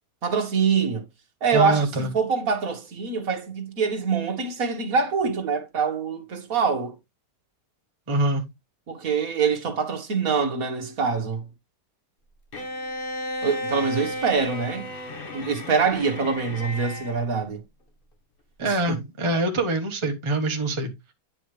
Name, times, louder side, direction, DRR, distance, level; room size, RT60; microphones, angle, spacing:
voice 1, 0.2-1.0 1.4-1.9 2.1-7.0 8.9-11.5 13.4-14.9 15.3-17.6 18.6-19.0, right 5 dB, 55° right, 1.9 m, -24 dB
voice 2, 1.5-2.1 8.1-8.5 18.6-20.9, right 2 dB, 20° right, 1.2 m, -24 dB
Bowed string instrument, 12.5-17.2, left 1 dB, 35° left, 1.4 m, -33 dB
9.5 x 5.5 x 3.2 m
omnidirectional pair, 1.8 m